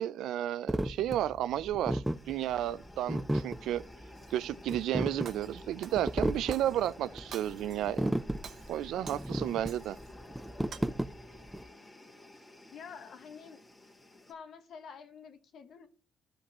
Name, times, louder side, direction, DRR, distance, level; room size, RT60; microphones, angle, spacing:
voice 1, 0.0-3.8 4.3-8.1 8.7-10.0, right 12 dB, 85° right, 0.3 m, -32 dB
sound 1, 0.7-11.6, right 1 dB, 5° right, 0.4 m, -34 dB
sound 2, 2.0-14.3, left 1 dB, 20° left, 1.6 m, -52 dB
Shatter, 4.1-4.8 5.2-6.9 7.3-8.0 8.3-10.1 10.5-10.8, right 7 dB, 65° right, 0.9 m, -50 dB
voice 2, 12.7-13.6 14.3-15.9, left 6 dB, 65° left, 1.2 m, -48 dB
13.0 x 5.2 x 3.0 m
cardioid pair, 90°, 0 cm